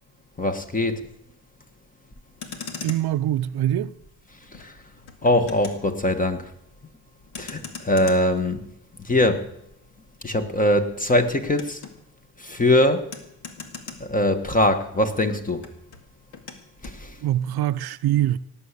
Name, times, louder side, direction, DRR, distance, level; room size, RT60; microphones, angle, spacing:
voice 1, 0.4-1.0 4.6-4.7 5.2-6.5 7.4-8.7 9.0-9.5 10.2-11.8 12.4-13.1 14.0-15.7 16.8-17.2, left 1 dB, 20° left, 1.5 m, -22 dB
Motor vehicle (road), 2.2-14.8 15.1-17.0, left 5 dB, 70° left, 2.2 m, -42 dB
voice 2, 2.8-3.9 17.2-18.4, right 12 dB, 65° right, 0.6 m, -23 dB
17.5 x 7.3 x 8.2 m
cardioid pair, 110°, 40 cm